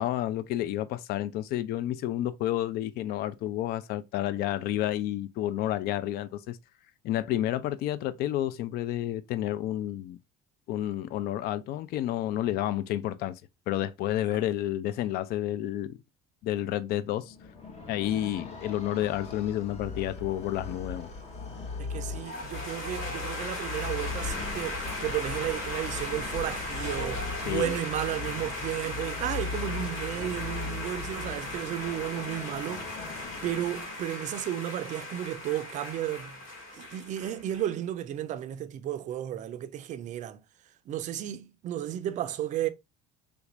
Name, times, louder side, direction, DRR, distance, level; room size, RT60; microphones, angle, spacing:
voice 1, 0.0-6.6 7.0-10.2 10.7-13.4 13.7-16.0 16.4-17.3 17.9-21.1 27.4-27.7, left 13 dB, 55° left, 0.4 m, -30 dB
sound 1, 17.2-34.2, left 4 dB, 35° left, 0.8 m, -39 dB
voice 2, 21.8-32.9 33.4-36.4 36.8-40.4 40.9-42.7, right 12 dB, 40° right, 0.4 m, -33 dB
sound 2, 22.2-37.7, left 1 dB, 85° left, 2.0 m, -38 dB
sound 3, 28.1-33.2, left 1 dB, 10° right, 0.7 m, -52 dB
3.4 x 2.5 x 2.9 m
cardioid pair, 130°, 19 cm